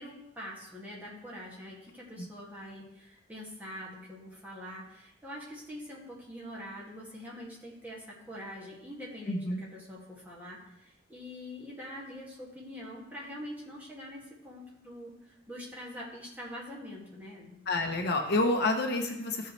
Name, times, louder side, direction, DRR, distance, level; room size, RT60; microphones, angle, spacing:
voice 1, 0.0-17.6, equal, 10° right, -5 dB, 2.1 m, -44 dB
voice 2, 9.3-9.6 17.7-19.5, left 2 dB, 55° left, 4 dB, 0.8 m, -28 dB
14.0 x 5.5 x 3.2 m, 0.83 s
head